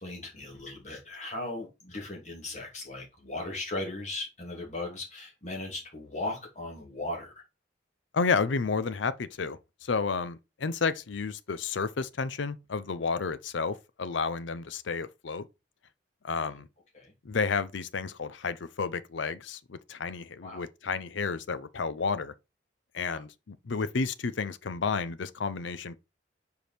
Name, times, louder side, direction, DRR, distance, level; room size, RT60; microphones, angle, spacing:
voice 1, 0.0-7.3 16.9-17.1 20.4-20.6 23.1-23.2, left 2 dB, 40° left, 2.4 m, -37 dB
voice 2, 8.1-15.4 16.2-16.7 17.2-22.3 22.9-26.0, left 5 dB, 80° left, 0.6 m, -31 dB
5.1 x 4.7 x 4.2 m
head